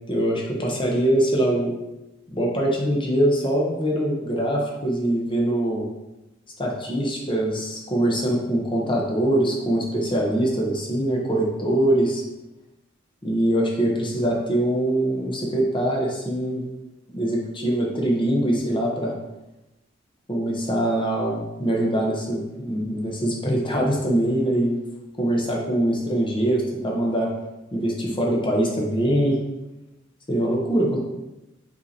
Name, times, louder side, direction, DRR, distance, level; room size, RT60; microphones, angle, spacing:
voice 1, 0.1-1.7 2.3-5.9 6.6-12.2 13.2-16.6 17.1-19.1 20.3-24.8 25.2-27.3 27.7-29.4 30.3-31.0, right 1 dB, 25° left, -2 dB, 0.8 m, -23 dB
5.4 x 2.8 x 2.7 m, 0.96 s
head